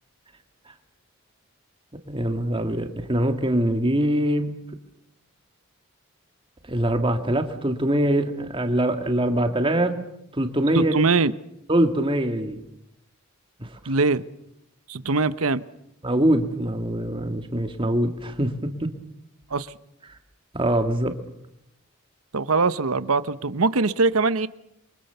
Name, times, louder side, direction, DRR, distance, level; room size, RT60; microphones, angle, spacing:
voice 1, 2.1-4.5 6.7-10.0 10.3-10.9 11.7-12.6 13.6-13.8 16.0-18.9 20.5-21.1, right 1 dB, 25° right, 6 dB, 1.8 m, -23 dB
voice 2, 10.7-11.3 13.8-14.2 14.9-15.6 19.5-19.7 22.3-24.5, right 3 dB, 70° right, 15 dB, 0.9 m, -22 dB
28.0 x 23.5 x 6.8 m, 0.79 s
head